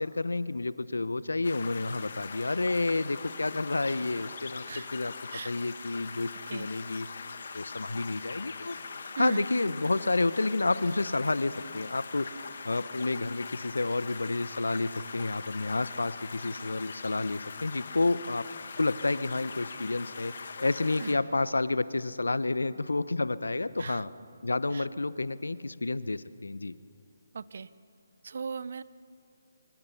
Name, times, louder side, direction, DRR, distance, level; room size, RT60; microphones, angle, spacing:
voice 1, 0.0-5.1 5.4-7.1 7.5-8.7 9.1-12.4 12.6-18.5 18.8-24.1 24.4-26.8, left 2 dB, 75° left, 16 dB, 0.9 m, -30 dB
sound 1, 1.4-21.2, left 5 dB, 55° left, 1.7 m, -42 dB
voice 2, 27.3-27.7 28.2-28.8, right 5 dB, 55° right, 17 dB, 0.8 m, -37 dB
25.0 x 23.5 x 5.7 m, 2.4 s
figure-of-eight pair, 145°, 0 cm